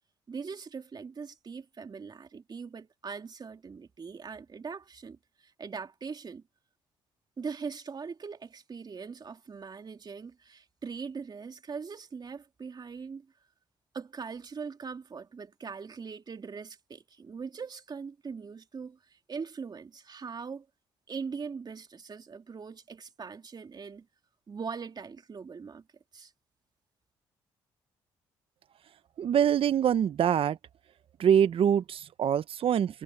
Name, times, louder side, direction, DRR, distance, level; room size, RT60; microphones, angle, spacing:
voice 1, 0.3-6.4 7.4-13.3 13.9-20.7 21.1-24.1 24.5-25.8 26.1-26.3, right 5 dB, 40° right, 3.1 m, -41 dB
voice 2, 29.2-30.6 31.2-33.0, right 9 dB, 60° right, 1.1 m, -24 dB
supercardioid pair, 60°, 11 cm